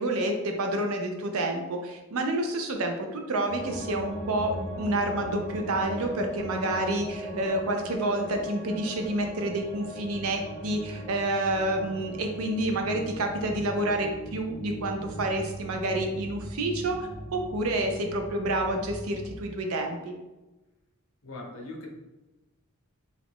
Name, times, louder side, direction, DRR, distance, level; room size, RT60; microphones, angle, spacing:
voice 1, 0.0-4.5 4.8-20.1, right 1 dB, 70° right, 4 dB, 0.5 m, -29 dB
sound 1, 3.5-19.3, equal, 5° left, 1.1 m, -39 dB
voice 2, 21.2-21.9, left 2 dB, 65° left, 1 dB, 0.7 m, -40 dB
2.9 x 2.4 x 3.5 m, 1.1 s
head